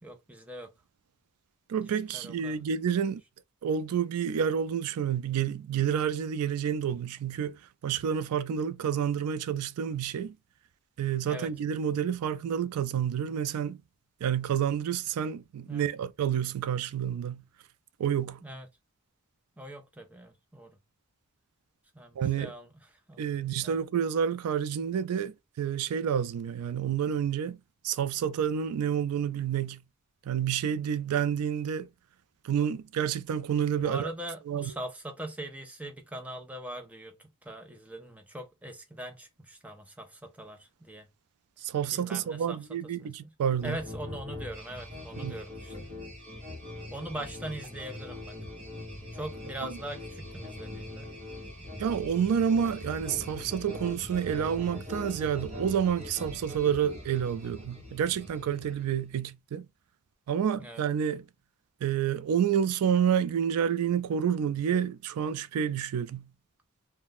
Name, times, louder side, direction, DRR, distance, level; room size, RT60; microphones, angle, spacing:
voice 1, 0.0-0.7 1.8-2.6 11.2-11.5 15.7-15.9 18.4-18.7 19.6-20.7 21.9-22.7 23.1-23.8 33.8-37.1 37.4-41.1 41.9-42.6 43.0-43.3 43.6-45.9 46.9-48.4 49.1-51.2 53.2-53.3 60.6-60.8, right 1 dB, 5° right, 0.4 m, -41 dB
voice 2, 1.7-3.2 3.6-10.4 11.0-13.8 14.2-17.4 18.0-18.4 22.2-22.5 23.2-27.6 27.8-29.8 30.3-31.9 32.4-34.1 34.5-34.7 41.6-43.8 45.2-45.4 49.6-49.8 51.8-59.7 60.3-61.2 61.8-66.3, right 8 dB, 90° right, 0.3 m, -29 dB
sound 1, 43.6-59.1, left 1 dB, 30° right, 0.9 m, -42 dB
2.4 x 2.1 x 3.4 m
head